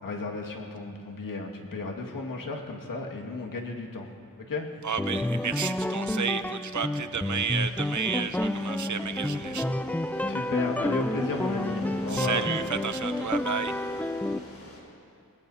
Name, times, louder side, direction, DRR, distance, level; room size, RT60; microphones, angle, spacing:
voice 1, 0.0-4.1 4.5-4.7 10.3-12.5, left 3 dB, 75° left, 0 dB, 2.0 m, -34 dB
voice 2, 4.8-9.7 12.1-13.8, right 7 dB, 60° right, 11 dB, 0.8 m, -32 dB
sound 1, 5.0-14.4, left 1 dB, 5° left, 0.4 m, -30 dB
sound 2, 7.3-14.8, left 1 dB, 55° left, 4.0 m, -43 dB
25.5 x 19.5 x 2.8 m, 2.5 s
wide cardioid pair, 75°, 33 cm